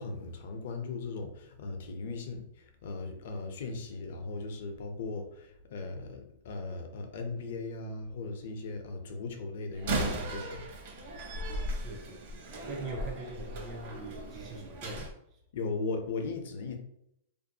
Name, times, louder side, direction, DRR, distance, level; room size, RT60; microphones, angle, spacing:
voice 1, 0.0-10.6 15.5-16.8, left 3 dB, 65° left, 0.6 m, -38 dB
Slam, 9.7-15.1, right 1 dB, 60° right, 0.8 m, -37 dB
voice 2, 11.7-15.1, right 2 dB, 30° right, 0.4 m, -43 dB
2.5 x 2.3 x 2.7 m
hypercardioid pair, 135°, 0 cm